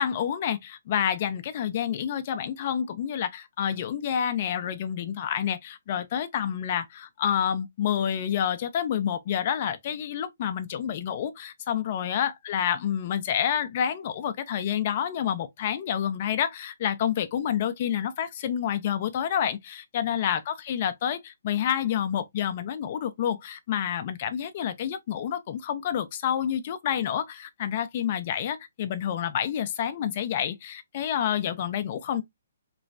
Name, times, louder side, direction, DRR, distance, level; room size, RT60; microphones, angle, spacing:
voice 1, 0.0-32.2, left 9 dB, 40° left, 0.4 m, -28 dB
3.2 x 3.0 x 2.4 m
hypercardioid pair, 155°, 0 cm